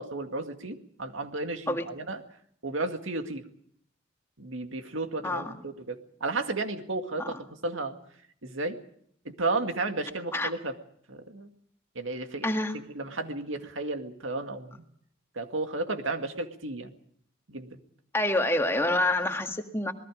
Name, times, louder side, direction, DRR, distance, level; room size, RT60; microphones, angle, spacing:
voice 1, 0.0-2.2 2.6-3.5 4.4-7.4 7.6-8.0 8.4-8.8 9.3-10.7 11.1-11.5 12.0-12.5 12.9-14.8 15.4-16.9 17.5-17.8, right 2 dB, 75° right, 6 dB, 2.1 m, -33 dB
voice 2, 5.2-5.6 7.2-7.3 10.3-10.5 12.4-12.8 18.1-19.9, left 1 dB, 10° left, 5 dB, 1.8 m, -27 dB
27.0 x 20.5 x 5.1 m, 0.65 s
head